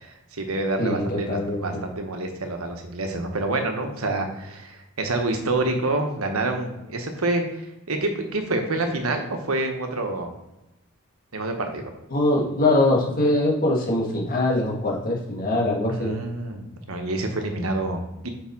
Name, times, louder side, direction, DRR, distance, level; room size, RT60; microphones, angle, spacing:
voice 1, 0.0-10.3 11.3-11.9 15.9-18.3, right 2 dB, 90° right, 4 dB, 1.2 m, -27 dB
voice 2, 0.8-1.6 12.1-16.1, left 1 dB, 40° left, -3 dB, 1.8 m, -22 dB
6.0 x 5.4 x 4.6 m, 0.95 s
head